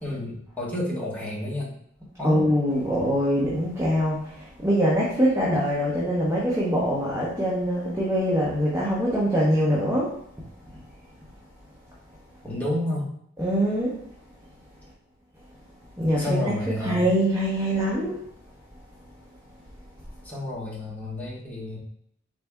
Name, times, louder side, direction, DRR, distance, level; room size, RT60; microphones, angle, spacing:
voice 1, 0.0-1.7 2.2-2.5 12.4-13.1 16.2-17.0 20.2-21.8, left 1 dB, 10° left, -5 dB, 1.2 m, -30 dB
voice 2, 2.2-10.2 13.4-14.0 16.0-16.4 16.8-18.2, equal, 10° right, -6 dB, 0.8 m, -23 dB
4.1 x 3.3 x 3.5 m, 0.70 s
head